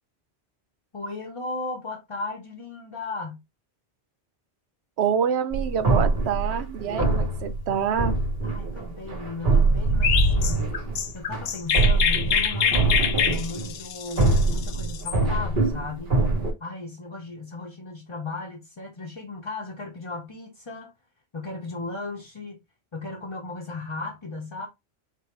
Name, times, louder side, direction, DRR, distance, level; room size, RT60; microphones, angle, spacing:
voice 1, 0.9-3.4 8.4-10.7 11.1-16.2 16.6-20.9 21.3-22.6 22.9-24.7, left 3 dB, 30° left, 0.8 m, -36 dB
voice 2, 5.0-8.1, right 8 dB, 85° right, 0.9 m, -26 dB
sound 1, 5.5-13.7 14.2-16.5, right 3 dB, 50° right, 1.3 m, -23 dB
Chirp tweet, 10.0-15.2, left 7 dB, 70° left, 0.9 m, -25 dB
4.8 x 3.1 x 2.9 m
omnidirectional pair, 1.1 m